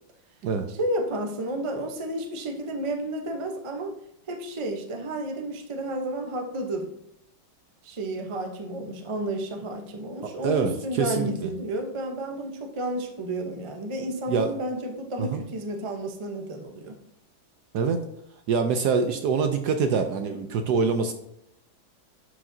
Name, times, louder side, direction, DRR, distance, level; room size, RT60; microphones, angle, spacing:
voice 1, 0.8-4.0 4.3-6.9 7.8-17.0 20.3-20.4, right 1 dB, 40° right, 3 dB, 0.4 m, -31 dB
voice 2, 10.2-11.5 14.3-14.5 15.2-15.4 17.7-18.0 18.5-21.1, right 5 dB, 70° right, 7 dB, 1.0 m, -25 dB
11.5 x 5.0 x 2.7 m, 0.78 s
omnidirectional pair, 2.2 m